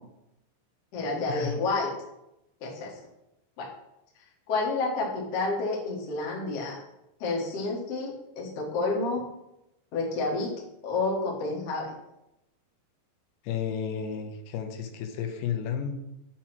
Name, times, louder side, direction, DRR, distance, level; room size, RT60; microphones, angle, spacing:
voice 1, 0.9-1.9 2.6-3.0 3.6-3.7 4.5-6.8 7.2-9.2 9.9-10.5 10.8-11.9, left 3 dB, 65° left, -3 dB, 1.6 m, -29 dB
voice 2, 13.4-16.0, left 7 dB, 90° left, 5 dB, 2.9 m, -32 dB
7.1 x 2.9 x 5.8 m, 0.89 s
omnidirectional pair, 5.0 m